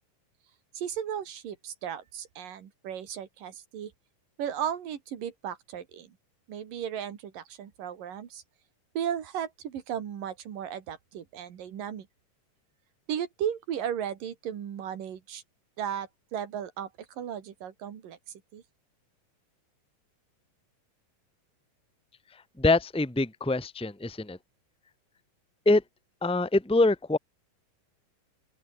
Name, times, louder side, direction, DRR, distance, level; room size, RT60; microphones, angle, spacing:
voice 1, 0.7-3.9 4.4-6.2 6.5-8.4 9.0-12.1 13.1-15.4 15.8-18.2 18.5-18.6, right 9 dB, 85° right, 4.0 m, -35 dB
voice 2, 22.6-24.4 25.6-25.8 26.2-27.2, left 2 dB, ahead, 2.3 m, -24 dB
open air
omnidirectional pair, 3.8 m